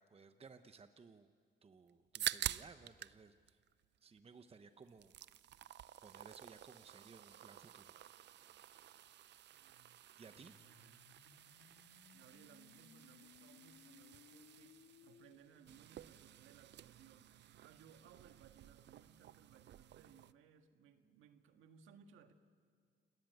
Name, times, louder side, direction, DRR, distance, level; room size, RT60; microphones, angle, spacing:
voice 1, 0.0-1.3 1.6-3.6 4.0-5.1 6.0-7.9 10.2-10.6, right 5 dB, 30° right, 9 dB, 0.9 m, -59 dB
sound 1, 1.9-3.2 3.5-4.5 4.8-20.3, right 11 dB, 60° right, 0.6 m, -49 dB
voice 2, 9.5-11.0 12.1-22.3, right 7 dB, 85° right, 7 dB, 1.7 m, -64 dB
sound 2, 10.4-15.4, left 8 dB, 80° left, 1.8 m, -64 dB
30.0 x 18.5 x 9.3 m, 2.1 s
cardioid pair, 90°, 20 cm